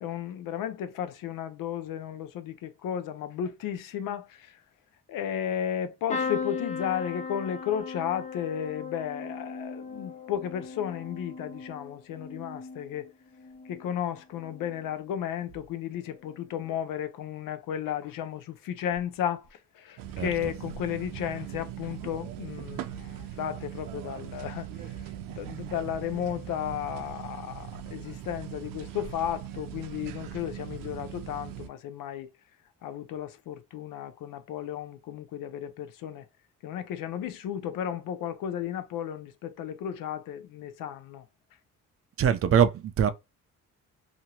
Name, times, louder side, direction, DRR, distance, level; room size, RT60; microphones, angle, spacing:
voice 1, 0.0-4.6 5.1-13.1 13.7-32.3 32.8-36.3 36.6-41.3, left 9 dB, 85° left, 0.6 m, -34 dB
sound 1, 6.1-13.9 14.4-14.9 16.2-16.4 16.6-16.7, left 5 dB, 25° left, 0.5 m, -38 dB
sound 2, 20.0-31.7, right 11 dB, 90° right, 0.5 m, -40 dB
voice 2, 42.2-43.1, right 8 dB, 45° right, 0.5 m, -22 dB
2.8 x 2.6 x 2.8 m
cardioid pair, 100°, 32 cm